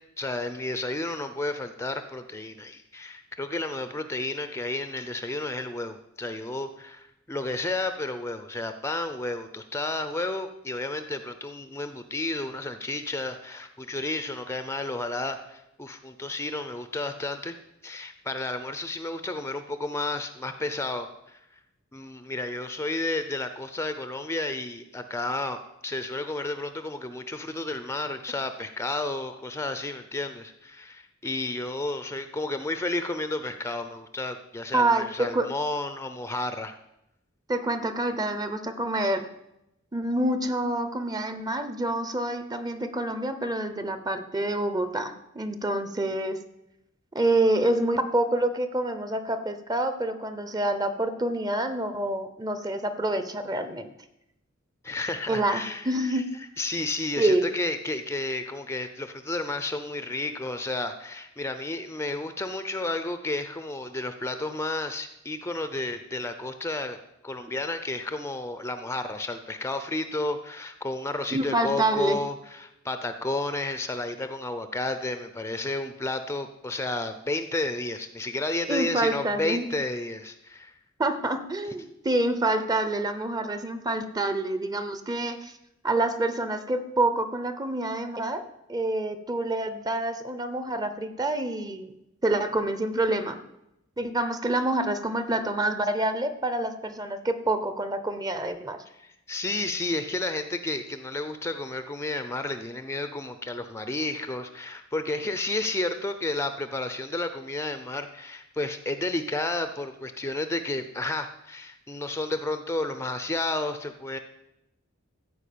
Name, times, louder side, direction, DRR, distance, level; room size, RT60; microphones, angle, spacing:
voice 1, 0.2-17.5 17.8-21.4 21.9-36.7 54.8-56.2 56.6-67.0 67.2-80.7 99.0-114.2, left 2 dB, 15° left, 9 dB, 0.6 m, -32 dB
voice 2, 34.7-35.5 37.5-39.3 39.9-46.4 47.1-53.9 55.3-56.3 57.2-57.4 71.3-72.2 78.7-79.7 81.0-85.5 85.8-91.9 92.2-93.4 94.0-98.8, right 2 dB, 20° right, 10 dB, 0.8 m, -27 dB
14.0 x 4.9 x 8.6 m, 0.86 s
head